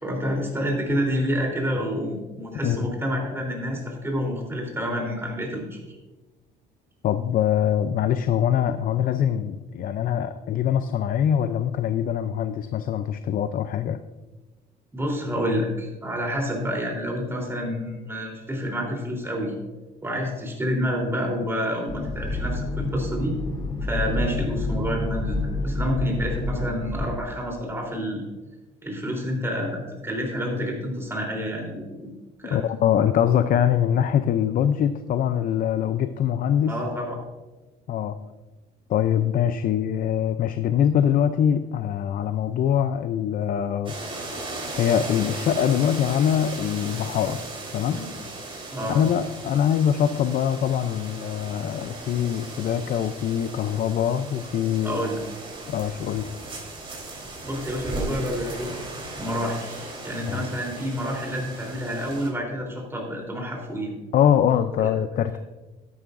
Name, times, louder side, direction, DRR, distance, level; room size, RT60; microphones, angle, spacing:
voice 1, 0.0-5.8 14.9-19.5 20.0-23.3 23.8-28.2 28.8-32.1 32.4-32.6 36.7-37.2 47.9-48.1 48.7-49.0 54.8-55.2 57.4-58.7 59.2-63.9 64.8-64.9, equal, 15° right, 0 dB, 3.5 m, -28 dB
voice 2, 7.0-14.0 32.5-36.8 37.9-38.2 38.9-43.9 44.8-47.4 47.7-48.0 48.9-55.0 55.7-56.3 60.3-60.4 64.1-65.4, left 9 dB, 55° left, 10 dB, 0.5 m, -23 dB
sound 1, 21.9-27.1, left 2 dB, 30° left, 2.4 m, -28 dB
sound 2, 43.9-62.3, right 2 dB, 30° right, 3.7 m, -37 dB
12.5 x 11.0 x 2.6 m, 1.1 s
cardioid pair, 110°, 17 cm